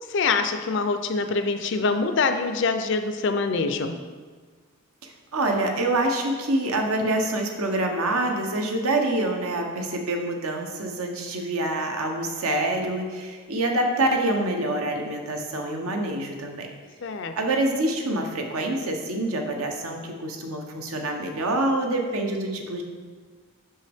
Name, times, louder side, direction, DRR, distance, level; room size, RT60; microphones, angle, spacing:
voice 1, 0.1-4.0 17.0-17.3, left 4 dB, 55° left, 8 dB, 0.4 m, -24 dB
voice 2, 5.0-16.7 17.3-22.8, right 1 dB, 80° right, 3 dB, 0.8 m, -26 dB
6.0 x 5.5 x 3.5 m, 1.5 s
head